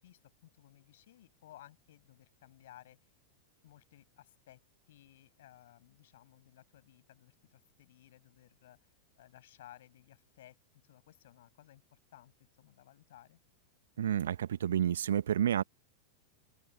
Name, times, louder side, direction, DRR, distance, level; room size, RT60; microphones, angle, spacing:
voice 1, 0.0-3.1 3.6-4.6 4.9-10.6 10.8-13.4, left 13 dB, 55° left, 6.9 m, -58 dB
voice 2, 14.0-15.6, right 10 dB, 65° right, 1.2 m, -30 dB
open air
figure-of-eight pair, 90°, 0 cm